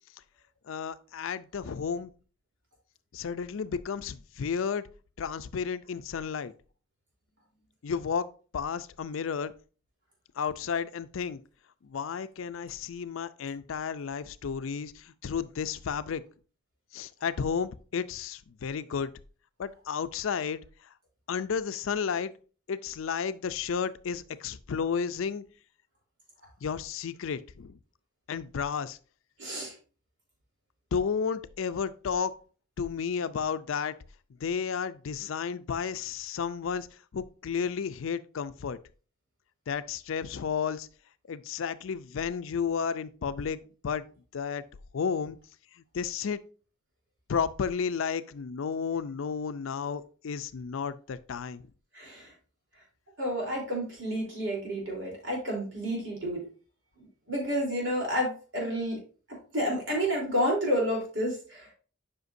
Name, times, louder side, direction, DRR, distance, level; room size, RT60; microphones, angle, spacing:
voice 1, 0.7-2.1 3.1-4.8 5.2-6.5 7.8-8.3 8.5-9.5 10.4-11.4 11.8-16.2 16.9-19.1 19.6-20.6 21.3-22.3 22.7-25.4 26.6-27.8 28.3-29.0 30.9-32.3 32.8-33.9 34.4-36.9 37.1-38.8 39.7-40.9 41.3-43.6 43.8-44.0 44.3-44.6 44.9-45.4 45.9-46.4 47.3-51.7, left 6 dB, 85° left, 0.4 m, -32 dB
voice 2, 29.4-29.7 51.9-52.3 53.2-56.5 57.3-59.0 59.5-61.7, equal, 65° right, 3.4 m, -30 dB
8.0 x 5.7 x 2.6 m
head